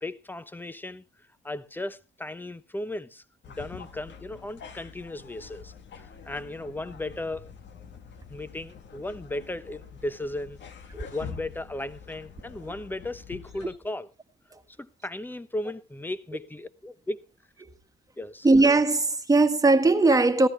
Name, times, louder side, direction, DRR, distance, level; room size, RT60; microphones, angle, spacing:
voice 1, 0.0-1.0 1.4-7.5 8.3-10.6 11.1-14.1 14.8-17.2 18.2-18.5, left 1 dB, 10° left, 0.9 m, -36 dB
sound 1, 3.4-13.8, left 6 dB, 65° left, 1.6 m, -46 dB
voice 2, 18.4-20.5, right 3 dB, 15° right, 1.6 m, -20 dB
14.5 x 13.0 x 3.2 m
cardioid pair, 90°, 20 cm